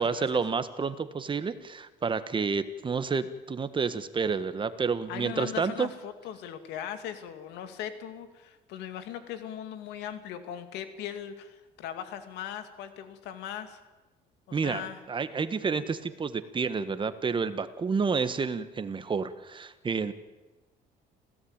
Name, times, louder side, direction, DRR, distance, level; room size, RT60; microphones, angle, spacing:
voice 1, 0.0-5.9 14.5-20.1, right 5 dB, 30° right, 12 dB, 1.5 m, -30 dB
voice 2, 5.1-13.8 14.5-15.0, left 10 dB, 90° left, 9 dB, 2.4 m, -39 dB
27.0 x 16.5 x 8.9 m, 1.2 s
cardioid pair, 110°, 17 cm